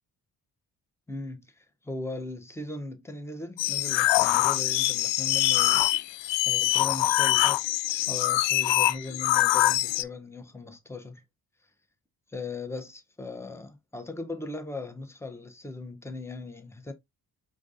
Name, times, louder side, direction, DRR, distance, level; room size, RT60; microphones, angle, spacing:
voice 1, 1.1-5.8 6.4-7.6 8.1-11.2 12.3-16.9, left 2 dB, 5° left, 1.0 m, -38 dB
sound 1, 3.6-10.0, left 15 dB, 65° left, 0.5 m, -24 dB
5.1 x 3.8 x 2.6 m
hypercardioid pair, 45°, 48 cm